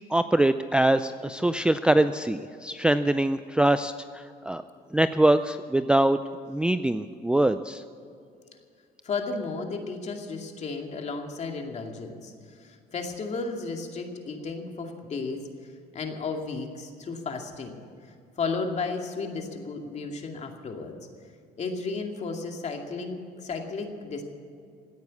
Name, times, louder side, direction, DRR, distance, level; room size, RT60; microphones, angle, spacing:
voice 1, 0.1-4.6 4.9-6.2 6.5-7.8, right 1 dB, 5° right, 10 dB, 0.4 m, -23 dB
voice 2, 9.0-12.3 12.6-15.4 15.9-17.8 18.4-21.0 21.6-24.2, left 4 dB, 40° left, 3 dB, 2.3 m, -33 dB
16.5 x 9.4 x 8.5 m, 2.4 s
cardioid pair, 110°, 17 cm